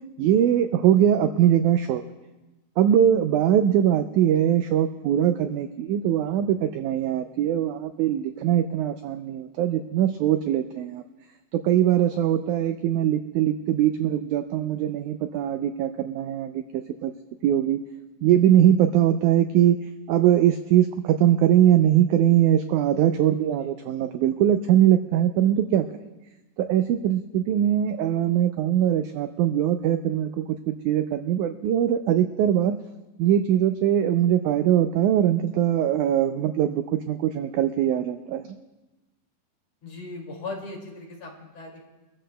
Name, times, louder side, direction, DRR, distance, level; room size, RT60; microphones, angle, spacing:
voice 1, 0.2-2.0 2.8-11.0 11.5-17.1 17.4-17.8 18.2-19.8 20.1-25.9 26.6-32.8 33.2-38.6, right 10 dB, 85° right, 8 dB, 1.7 m, -21 dB
voice 2, 23.4-23.7 39.8-41.8, left 3 dB, 50° left, -1 dB, 3.4 m, -38 dB
24.5 x 14.0 x 2.2 m, 1.1 s
omnidirectional pair, 4.0 m